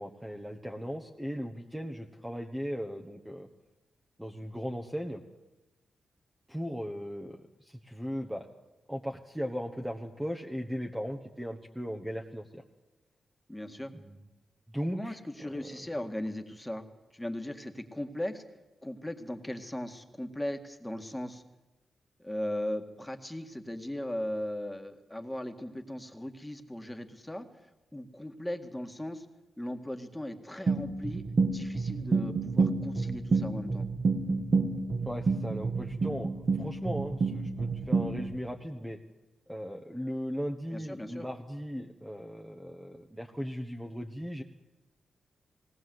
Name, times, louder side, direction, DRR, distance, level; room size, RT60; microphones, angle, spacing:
voice 1, 0.0-3.5 4.2-5.2 6.5-7.4 7.7-8.5 8.9-12.6 13.9-14.2 14.7-15.2 15.5-15.8 35.1-36.3 36.6-39.0 39.5-44.4, equal, 5° right, 3 dB, 1.3 m, -37 dB
voice 2, 13.5-13.9 14.9-16.9 17.1-18.4 18.8-21.4 22.2-27.5 27.9-29.3 29.6-33.8 40.7-41.3, left 1 dB, 10° left, 6 dB, 1.9 m, -38 dB
sound 1, 30.7-38.4, right 4 dB, 50° right, 2.2 m, -29 dB
19.0 x 18.5 x 7.9 m, 1.1 s
cardioid pair, 75°, 0 cm